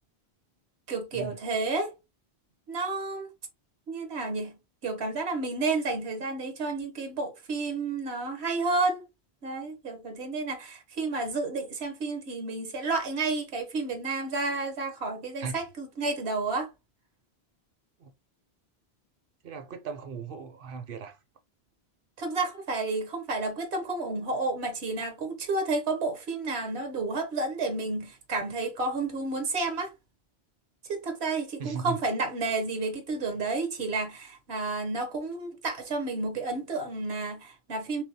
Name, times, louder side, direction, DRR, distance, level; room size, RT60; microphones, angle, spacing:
voice 1, 0.9-1.9 2.7-3.3 3.9-4.6 4.8-9.0 9.4-16.7 22.2-29.9 30.9-38.0, right 3 dB, 80° right, 1.1 m, -31 dB
voice 2, 19.4-21.2 31.6-32.0, right 6 dB, 60° right, 0.7 m, -37 dB
3.3 x 3.0 x 2.7 m
omnidirectional pair, 1.1 m